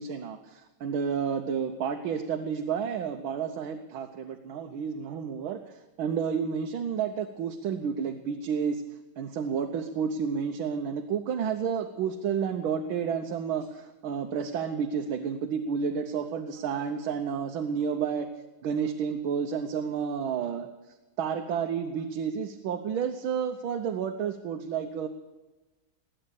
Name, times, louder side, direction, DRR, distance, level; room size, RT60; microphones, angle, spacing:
voice 1, 0.0-8.8 9.2-18.3 18.6-20.7 21.2-25.1, right 7 dB, 85° right, 5 dB, 1.7 m, -31 dB
20.0 x 9.1 x 7.0 m, 1.1 s
omnidirectional pair, 2.2 m